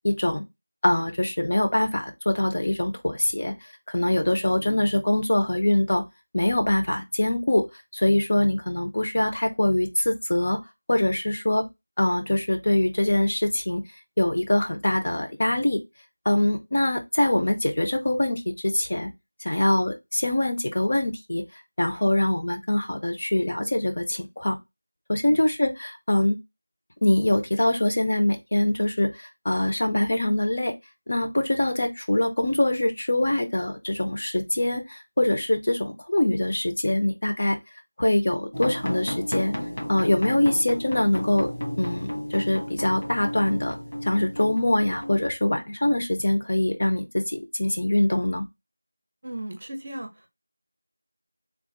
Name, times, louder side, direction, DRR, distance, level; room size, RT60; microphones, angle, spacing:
voice 1, 0.0-0.4 0.8-3.5 3.9-6.0 6.3-7.6 7.9-10.6 10.9-11.6 12.0-13.8 14.2-15.8 16.2-19.1 19.4-21.4 21.8-24.6 25.1-26.4 27.0-30.7 31.1-37.6 38.0-39.5 39.9-41.5 41.8-43.8 44.0-48.4, left 1 dB, 35° left, 0.6 m, -23 dB
sound 1, 38.5-45.3, equal, 85° left, 1.6 m, -33 dB
voice 2, 49.2-50.3, right 1 dB, 35° right, 0.6 m, -36 dB
3.5 x 2.5 x 3.8 m
figure-of-eight pair, 180°, 0 cm